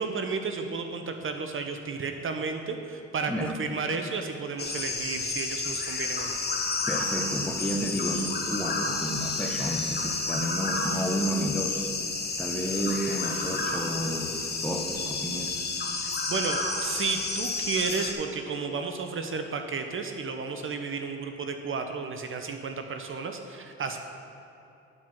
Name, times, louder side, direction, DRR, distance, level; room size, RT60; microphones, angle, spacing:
voice 1, 0.0-6.4 16.0-24.0, right 4 dB, 45° right, 5 dB, 0.7 m, -32 dB
sound 1, 4.6-18.1, left 3 dB, 35° left, 1.1 m, -31 dB
voice 2, 6.9-11.9 12.4-15.7, equal, 5° left, 2 dB, 0.8 m, -31 dB
9.9 x 4.6 x 5.9 m, 2.8 s
cardioid pair, 90°, 30 cm